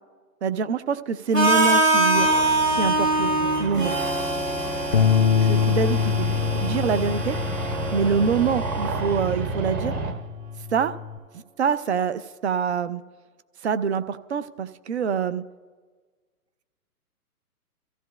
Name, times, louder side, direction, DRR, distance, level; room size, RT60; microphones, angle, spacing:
voice 1, 0.4-3.9 5.3-7.4 7.9-10.0 10.7-11.0 11.3-13.0 13.6-15.4, right 6 dB, 45° right, 13 dB, 0.5 m, -25 dB
Harmonica, 1.3-9.2, right 2 dB, 85° right, 2.8 m, -24 dB
sound 1, 2.1-10.1, right 2 dB, 15° right, 0.8 m, -31 dB
sound 2, 4.9-11.2, left 7 dB, 35° left, 0.4 m, -25 dB
27.0 x 14.5 x 2.2 m, 1.4 s
figure-of-eight pair, 130°, 47 cm